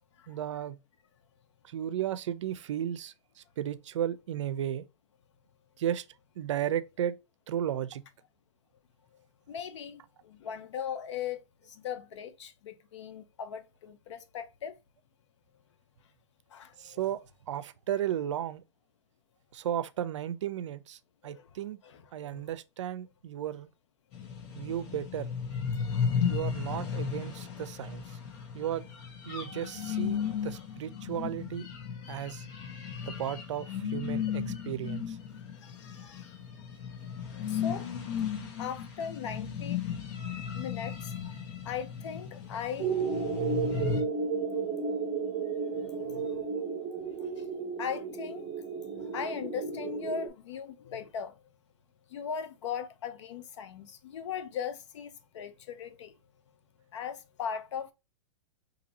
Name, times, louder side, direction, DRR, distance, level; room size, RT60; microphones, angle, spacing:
voice 1, 0.3-0.8 1.6-4.8 5.8-6.0 6.4-7.1 7.5-8.0 16.8-17.2 17.5-18.6 19.5-21.0 21.2-21.8 22.1-23.7 24.5-25.3 26.2-28.0 28.5-28.9 29.3-31.7 32.1-32.5 33.1-35.2, right 10 dB, 80° right, 0.5 m, -34 dB
voice 2, 9.5-14.8 16.5-17.0 21.2-21.6 21.8-22.5 29.4-29.5 30.3-30.4 32.8-33.0 35.3-36.4 37.3-37.9 38.2-38.3 38.6-39.8 40.5-41.3 41.6-42.9 44.3-44.4 45.7-46.4 47.2-48.5 48.9-51.4 52.1-56.1 56.9-57.9, left 7 dB, 75° left, 0.7 m, -39 dB
sound 1, 24.1-44.0, left 7 dB, 40° left, 0.9 m, -35 dB
sound 2, 42.8-50.3, right 5 dB, 15° right, 1.2 m, -33 dB
2.8 x 2.6 x 4.0 m
hypercardioid pair, 140°, 15 cm